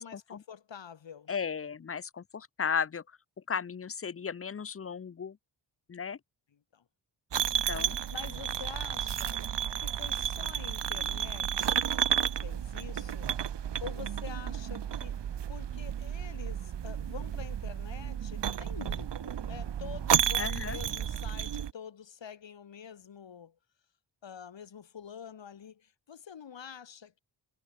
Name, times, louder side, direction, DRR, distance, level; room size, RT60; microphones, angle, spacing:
voice 1, 0.0-1.3 6.7-6.8 7.8-9.4 9.8-11.8 12.1-13.3 13.8-15.2 15.5-23.6 24.2-27.2, left 7 dB, 70° left, 2.8 m, -47 dB
voice 2, 1.3-3.0 3.5-5.4 5.9-6.2 7.7-8.0 20.4-20.8, left 6 dB, 30° left, 0.6 m, -35 dB
sound 1, 7.3-21.7, right 9 dB, 65° right, 1.2 m, -32 dB
wide cardioid pair, 90°, 45 cm